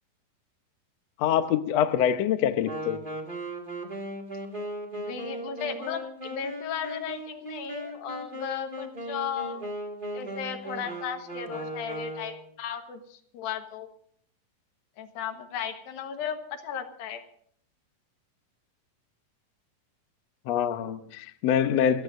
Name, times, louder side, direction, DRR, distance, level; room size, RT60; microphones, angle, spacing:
voice 1, 1.2-3.0 20.5-22.0, left 9 dB, 65° left, 9 dB, 1.7 m, -25 dB
Wind instrument woodwind instrument, 2.6-12.5, right 1 dB, 20° right, 1.5 m, -37 dB
voice 2, 4.9-9.6 10.1-13.9 15.0-17.2, left 8 dB, 85° left, 7 dB, 3.2 m, -35 dB
28.5 x 16.0 x 2.6 m, 0.62 s
omnidirectional pair, 4.1 m